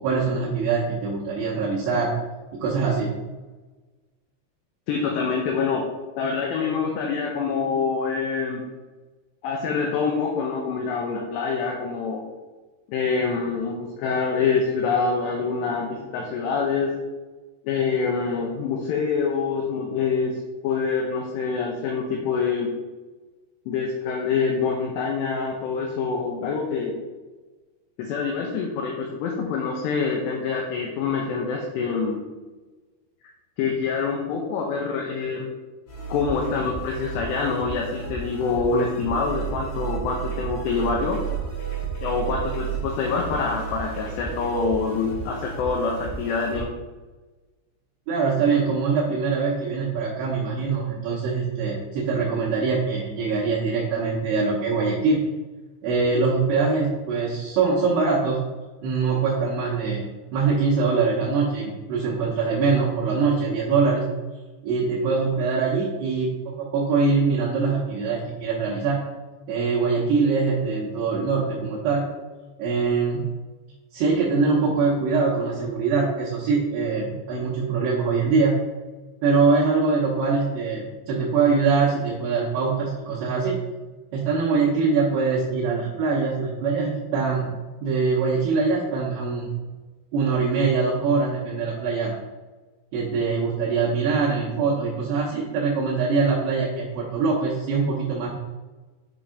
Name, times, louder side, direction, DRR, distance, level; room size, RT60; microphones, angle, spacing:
voice 1, 0.0-2.1 2.6-3.1 48.1-55.2 55.8-58.4 58.8-64.1 64.6-69.0 69.5-72.0 72.6-73.3 73.9-78.6 79.2-83.6 84.1-87.5 87.8-89.5 90.1-92.2 92.9-98.3, right 4 dB, 75° right, -7 dB, 2.6 m, -23 dB
voice 2, 4.9-5.9 6.2-8.6 9.4-12.2 12.9-16.9 17.6-22.7 23.7-27.0 28.0-32.2 33.6-35.5 36.1-41.2 42.0-46.7, left 5 dB, 85° left, 0 dB, 2.4 m, -25 dB
sound 1, 35.9-46.6, right 6 dB, 65° left, 1.7 m, -33 dB
8.4 x 3.4 x 5.0 m, 1.2 s
omnidirectional pair, 5.9 m